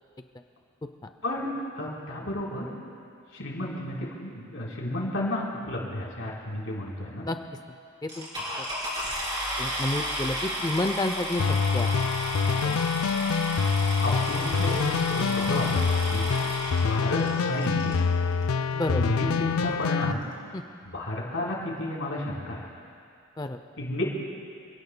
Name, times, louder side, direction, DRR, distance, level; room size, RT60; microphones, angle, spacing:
voice 1, 1.2-2.7 3.3-7.3 14.0-16.3 16.8-18.0 18.9-20.3 20.8-22.7 23.8-24.0, left 1 dB, 65° left, -4 dB, 3.9 m, -32 dB
sound 1, 8.1-18.0 18.8-18.9 19.4-19.5 19.7-20.0, equal, 20° right, 3.1 m, -33 dB
voice 2, 9.6-11.9 12.6-12.8 18.7-19.0 20.5-20.6 23.4-23.6, left 2 dB, 20° left, 7 dB, 0.4 m, -30 dB
sound 2, 11.4-20.1, left 5 dB, 90° left, 0.4 m, -26 dB
28.0 x 17.5 x 2.2 m, 2.4 s
head